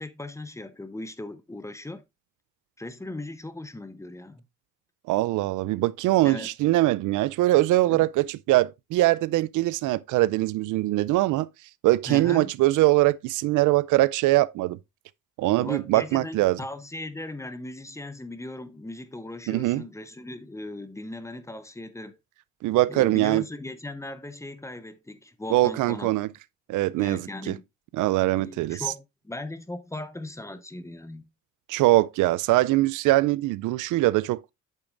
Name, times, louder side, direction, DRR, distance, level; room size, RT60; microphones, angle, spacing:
voice 1, 0.0-2.0 2.8-4.4 6.2-6.5 7.9-8.1 12.1-12.5 15.6-22.2 22.9-26.1 27.0-27.7 28.4-31.3, left 2 dB, 10° left, 0.8 m, -38 dB
voice 2, 5.1-11.5 11.8-14.8 15.4-16.6 19.5-19.8 22.6-23.4 25.5-26.3 26.7-27.6 27.9-28.8 31.7-34.5, right 17 dB, 85° right, 0.4 m, -22 dB
8.3 x 6.9 x 2.5 m
cardioid pair, 90°, 30 cm